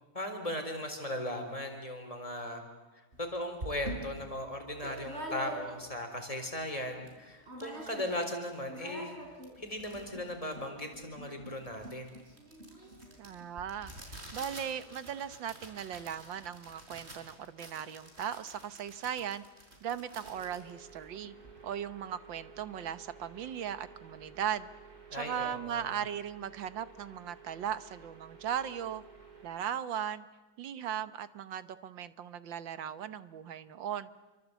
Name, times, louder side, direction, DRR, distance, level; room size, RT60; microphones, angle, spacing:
voice 1, 0.1-2.6 2.9-9.2 9.6-12.2 25.1-25.9, left 1 dB, 15° left, 4 dB, 4.3 m, -38 dB
sound 1, 3.1-3.2 3.6-6.0 6.4-6.5 6.7-7.1 7.4-8.3 8.5-21.6, right 1 dB, 30° right, 5.4 m, -46 dB
voice 2, 13.2-19.4 19.8-21.4 21.6-24.7 25.1-29.0 29.4-30.3 30.6-34.1, right 9 dB, 70° right, 13 dB, 1.7 m, -38 dB
sound 2, 20.1-29.5, right 5 dB, 50° right, 4.5 m, -54 dB
28.0 x 24.0 x 8.3 m, 1.2 s
omnidirectional pair, 2.2 m